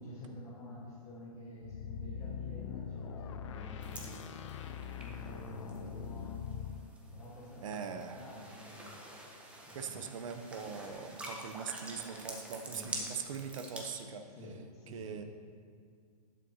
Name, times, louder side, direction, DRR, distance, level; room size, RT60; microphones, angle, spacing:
voice 1, 0.0-4.2 4.9-6.7 7.1-7.9 8.1-9.0 9.6-10.1 12.7-12.9 14.3-15.2, equal, 15° left, -7 dB, 1.5 m, -48 dB
sound 1, 1.6-6.9, left 8 dB, 45° left, 0.6 m, -42 dB
sound 2, 3.8-14.0, right 1 dB, 5° right, 0.8 m, -48 dB
voice 2, 7.6-8.2 9.7-14.3 14.9-15.2, right 6 dB, 55° right, 8 dB, 0.8 m, -41 dB
11.5 x 8.4 x 2.8 m, 2.1 s
hypercardioid pair, 145°, 20 cm